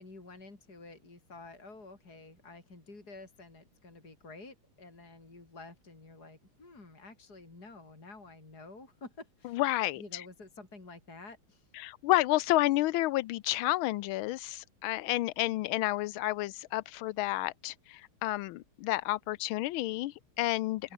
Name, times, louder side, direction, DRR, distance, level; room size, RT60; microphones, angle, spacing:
voice 1, 0.0-9.6 10.0-11.7 20.8-20.9, left 3 dB, 45° left, 5.6 m, -50 dB
voice 2, 9.5-10.2 11.8-20.9, left 17 dB, 75° left, 1.4 m, -30 dB
open air
omnidirectional pair, 2.4 m